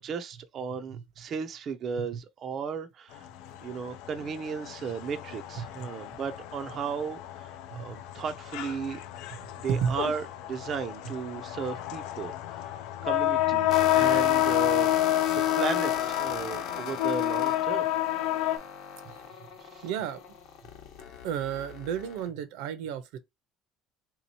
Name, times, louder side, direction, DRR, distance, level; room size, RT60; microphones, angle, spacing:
voice 1, 0.0-3.3 3.6-9.0 9.6-12.7 13.0-14.9 15.6-17.9 19.6-19.8, right 6 dB, 30° right, 0.4 m, -35 dB
voice 2, 0.7-1.0 2.0-2.1 5.8-5.9 7.7-7.9 9.4-10.0 11.0-11.1 19.0-19.2 19.8-20.2 21.2-23.2, right 8 dB, 85° right, 0.7 m, -33 dB
sound 1, 3.1-18.6, left 14 dB, 75° left, 0.5 m, -29 dB
sound 2, 13.7-22.3, left 7 dB, 60° left, 0.9 m, -38 dB
3.7 x 2.9 x 2.7 m
cardioid pair, 180°, 0 cm